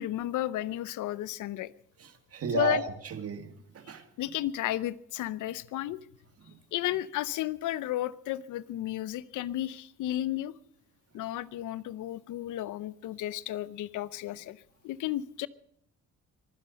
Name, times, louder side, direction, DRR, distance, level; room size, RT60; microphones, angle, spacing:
voice 1, 0.0-1.7 2.5-2.8 4.2-6.0 6.7-10.5 11.1-15.5, left 14 dB, 85° left, 0.7 m, -33 dB
voice 2, 2.0-4.0 6.4-6.5, right 6 dB, 50° right, 1.9 m, -34 dB
24.5 x 9.9 x 5.3 m
cardioid pair, 90°, 30 cm